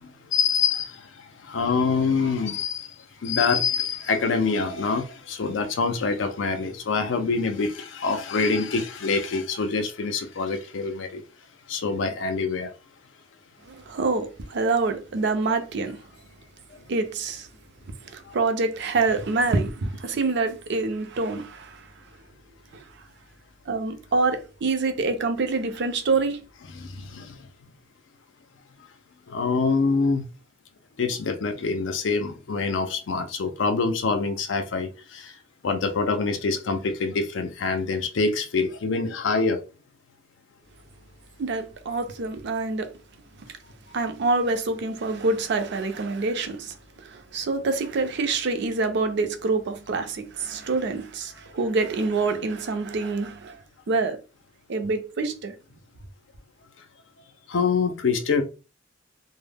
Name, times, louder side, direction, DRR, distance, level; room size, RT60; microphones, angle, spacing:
voice 1, 0.0-0.9 1.5-2.9 3.2-11.2 11.7-12.7 26.7-27.4 29.3-30.2 31.0-35.2 35.6-39.6 57.5-58.4, left 4 dB, 70° left, 0.5 m, -25 dB
voice 2, 13.7-16.0 16.9-17.5 18.1-21.8 23.7-26.4 41.4-42.9 43.9-46.7 47.0-53.5 53.9-54.2 54.7-55.5, right 3 dB, 60° right, 0.5 m, -26 dB
2.0 x 2.0 x 3.3 m
head